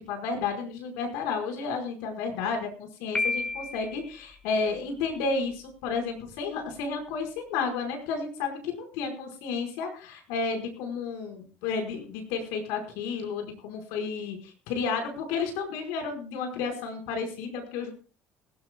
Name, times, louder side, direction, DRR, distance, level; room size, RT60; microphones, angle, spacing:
voice 1, 0.1-17.9, left 5 dB, 90° left, 3 dB, 5.0 m, -32 dB
Piano, 3.1-4.1, left 3 dB, 15° left, 6.0 m, -30 dB
20.0 x 16.5 x 2.3 m, 0.37 s
cardioid pair, 105°, 5 cm